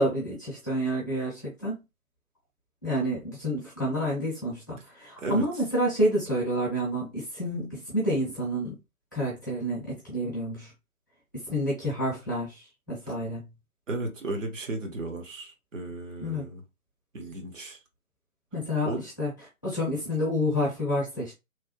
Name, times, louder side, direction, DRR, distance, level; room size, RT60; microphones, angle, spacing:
voice 1, 0.0-1.8 2.8-8.7 9.1-10.7 11.5-13.5 16.2-16.5 18.5-19.3 19.6-21.3, equal, 15° left, 0.6 m, -29 dB
voice 2, 13.9-16.6 17.1-17.8 18.8-19.0, right 2 dB, 60° right, 1.1 m, -34 dB
3.1 x 2.0 x 3.0 m
figure-of-eight pair, 140°, 44 cm